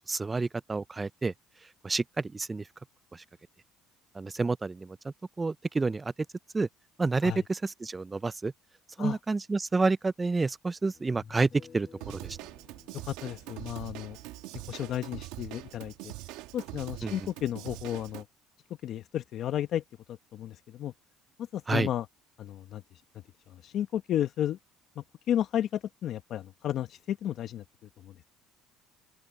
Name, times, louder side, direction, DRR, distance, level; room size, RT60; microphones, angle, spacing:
voice 1, 0.1-1.3 1.8-2.6 3.1-3.2 4.1-6.1 6.5-6.7 7.0-8.5 9.0-12.4 17.0-17.3 21.7-21.9, right 3 dB, 20° right, 0.5 m, -29 dB
sound 1, 10.9-16.2, left 6 dB, 35° left, 5.7 m, -56 dB
Drum kit / Drum, 12.0-18.2, right 18 dB, 85° right, 1.7 m, -43 dB
voice 2, 12.9-14.2 14.7-16.1 16.5-18.2 18.8-19.8 20.3-20.9 21.5-22.1 22.4-22.8 23.6-24.6 25.0-27.6 28.0-28.1, left 11 dB, 60° left, 1.0 m, -32 dB
open air
supercardioid pair, 100°, 0 cm